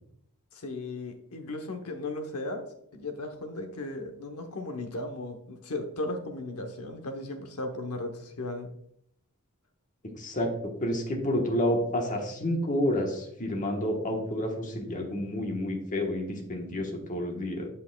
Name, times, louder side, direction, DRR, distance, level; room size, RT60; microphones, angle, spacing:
voice 1, 0.5-8.7, left 2 dB, 85° left, 5 dB, 0.9 m, -36 dB
voice 2, 10.2-10.5 10.8-17.7, left 1 dB, 35° left, 1 dB, 1.2 m, -29 dB
8.3 x 5.4 x 2.3 m, 0.71 s
head